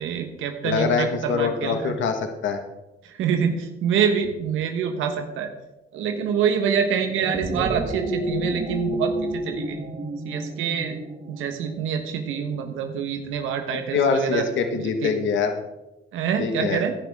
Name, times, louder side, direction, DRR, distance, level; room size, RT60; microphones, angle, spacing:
voice 1, 0.0-1.9 3.0-5.5 5.9-9.8 10.2-11.0 11.3-14.4 14.8-15.1 16.1-16.9, right 7 dB, 90° right, 5 dB, 1.2 m, -26 dB
voice 2, 0.6-2.6 13.9-15.5 16.4-16.8, left 5 dB, 70° left, 5 dB, 1.5 m, -24 dB
sound 1, 7.0-11.6, right 1 dB, 65° right, 2.8 m, -30 dB
16.0 x 10.5 x 3.6 m, 0.97 s
cardioid pair, 90°, 20 cm